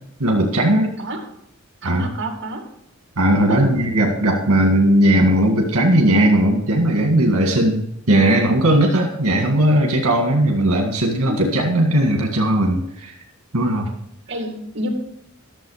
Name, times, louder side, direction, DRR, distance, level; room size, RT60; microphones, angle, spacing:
voice 1, 0.2-0.9 1.8-2.1 3.2-13.1 13.5-13.9, right 1 dB, 80° right, 2 dB, 1.8 m, -17 dB
voice 2, 1.8-2.6 3.5-3.8 11.2-11.4 14.3-14.9, right 1 dB, 55° right, 3 dB, 2.3 m, -28 dB
13.0 x 7.0 x 4.9 m, 0.75 s
head